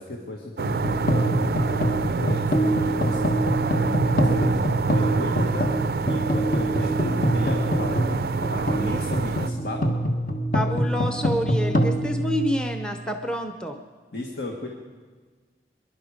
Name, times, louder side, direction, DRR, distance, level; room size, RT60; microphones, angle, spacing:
voice 1, 0.0-4.6 4.9-5.8 6.0-9.9 14.1-14.7, left 1 dB, 70° left, 0 dB, 1.7 m, -35 dB
sound 1, 0.6-13.1, right 1 dB, 50° left, 1.3 m, -25 dB
sound 2, 0.6-9.5, right 4 dB, 60° right, 0.4 m, -27 dB
voice 2, 10.5-13.8, equal, 5° left, 6 dB, 0.7 m, -28 dB
23.5 x 11.5 x 5.1 m, 1.5 s
head